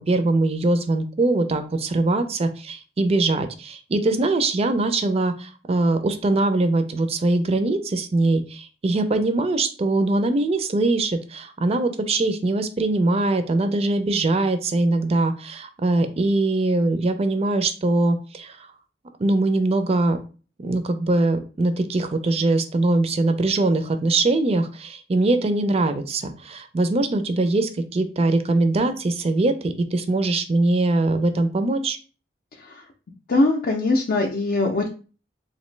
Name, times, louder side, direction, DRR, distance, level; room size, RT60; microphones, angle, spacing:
voice 1, 0.1-18.6 19.2-20.2 20.6-32.0, right 2 dB, 35° right, 8 dB, 0.4 m, -22 dB
voice 2, 33.3-34.9, left 2 dB, 55° left, 0 dB, 0.5 m, -21 dB
3.0 x 2.5 x 3.2 m, 0.36 s
head